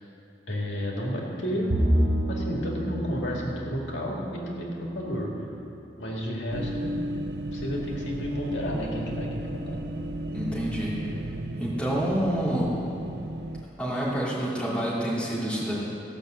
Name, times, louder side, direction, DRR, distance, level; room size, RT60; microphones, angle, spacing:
voice 1, 0.5-1.8 2.3-5.3 6.0-7.1 7.5-9.8, equal, 85° left, -2 dB, 2.1 m, -31 dB
Bowed string instrument, 1.7-5.2, equal, 50° right, 2.8 m, -28 dB
sound 1, 6.5-13.7, right 1 dB, 65° right, 0.5 m, -34 dB
voice 2, 10.3-11.1 11.6-12.7 13.8-15.7, equal, 5° left, -9 dB, 2.9 m, -28 dB
15.5 x 6.0 x 7.7 m, 2.8 s
head